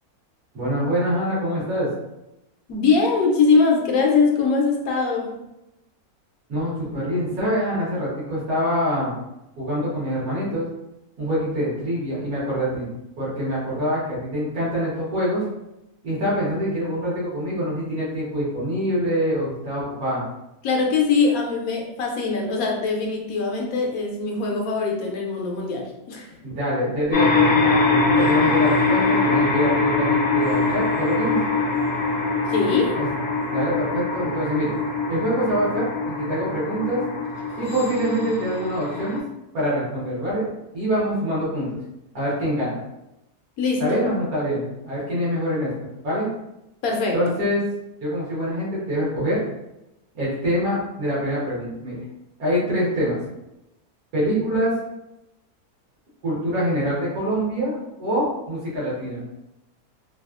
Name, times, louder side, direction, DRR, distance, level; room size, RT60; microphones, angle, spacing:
voice 1, 0.5-1.9 6.5-9.1 9.6-10.7 11.2-12.9 13.2-15.4 16.0-20.2 26.4-31.4 33.0-33.1 33.5-34.7 35.1-37.0 37.6-39.2 39.5-40.5 40.7-41.7 42.1-42.8 43.8-45.7 46.0-46.3 47.1-47.6 48.0-49.4 50.1-52.0 52.4-53.2 54.1-54.7 56.2-59.2, equal, 65° right, -8 dB, 1.6 m, -25 dB
voice 2, 2.7-5.4 20.6-26.4 32.5-33.0 43.6-44.0 46.8-47.2, left 4 dB, 70° left, 0 dB, 0.9 m, -22 dB
sound 1, 27.1-39.2, left 3 dB, 50° left, 0.7 m, -22 dB
3.4 x 2.3 x 2.4 m, 0.90 s
omnidirectional pair, 1.7 m